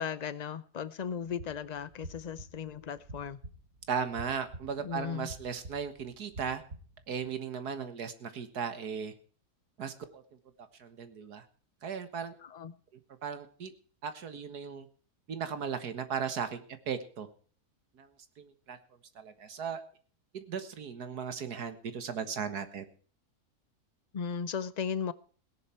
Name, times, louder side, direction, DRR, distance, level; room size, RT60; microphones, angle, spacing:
voice 1, 0.0-3.4 4.8-5.3 12.4-12.7 24.1-25.1, left 7 dB, 50° left, 16 dB, 0.4 m, -36 dB
sound 1, 1.2-7.4, right 1 dB, 65° right, 2.9 m, -49 dB
voice 2, 3.9-6.6 7.1-9.1 9.8-10.2 10.8-11.4 11.8-12.3 13.2-13.7 14.0-14.9 15.3-17.3 18.0-18.1 18.4-18.8 19.2-19.8 20.3-22.9, right 6 dB, 80° right, 10 dB, 2.0 m, -36 dB
17.5 x 11.0 x 4.5 m, 0.43 s
omnidirectional pair, 1.6 m